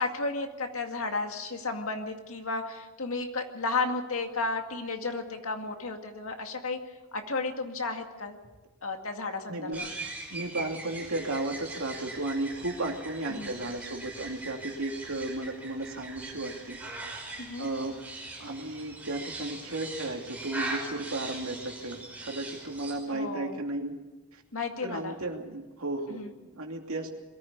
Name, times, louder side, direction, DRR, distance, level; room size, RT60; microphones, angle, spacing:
voice 1, 0.0-6.8 7.1-8.4 8.8-9.9 13.3-13.5 17.4-17.7 23.1-23.6 24.5-25.2 26.1-26.3, left 3 dB, 65° left, 5 dB, 2.2 m, -33 dB
voice 2, 9.5-9.9 10.3-16.8 17.6-17.9 18.4-23.9 24.3-24.4 24.8-27.1, right 2 dB, 70° right, 2 dB, 2.8 m, -34 dB
sound 1, 9.7-23.0, right 2 dB, 5° right, 5.7 m, -41 dB
22.0 x 14.5 x 8.6 m, 1.2 s
head